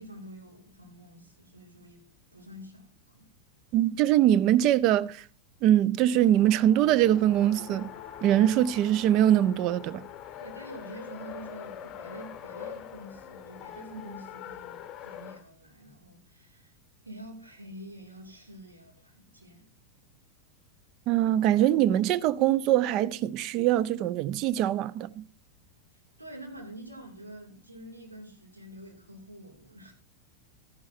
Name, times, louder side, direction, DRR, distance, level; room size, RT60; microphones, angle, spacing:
voice 1, 0.0-2.0 2.3-3.3 10.4-16.7 17.0-19.7 26.2-29.9, right 1 dB, 80° right, 2.7 m, -46 dB
voice 2, 3.7-5.3 5.6-7.9 8.2-10.0 21.1-25.2, right 12 dB, 40° right, 0.5 m, -23 dB
Race car auto racing, 6.2-15.4, left 10 dB, 30° left, 0.9 m, -44 dB
13.5 x 11.0 x 2.7 m
figure-of-eight pair, 90°, 0 cm